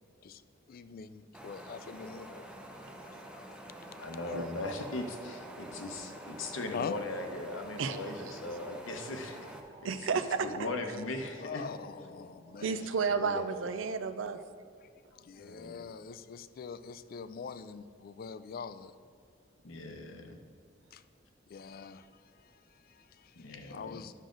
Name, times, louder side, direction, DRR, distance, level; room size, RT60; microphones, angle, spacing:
voice 1, 0.7-3.5 3.8-4.0 4.3-4.4 6.7-6.9 11.4-12.9 14.8-18.9 20.9-21.0 21.5-24.1, left 6 dB, 50° left, 13 dB, 0.4 m, -44 dB
sound 1, 1.3-9.6, right 1 dB, 5° right, 0.7 m, -48 dB
voice 2, 4.0-9.4 9.8-9.9 10.4-11.6 13.1-13.6 15.4-15.8 19.6-20.4 23.4-24.0, left 2 dB, 80° left, 4 dB, 0.9 m, -39 dB
sound 2, 4.0-13.7, right 2 dB, 25° right, 1.0 m, -53 dB
voice 3, 9.8-10.7 12.6-14.4, right 5 dB, 75° right, 11 dB, 0.5 m, -32 dB
10.5 x 6.4 x 3.9 m, 2.3 s
head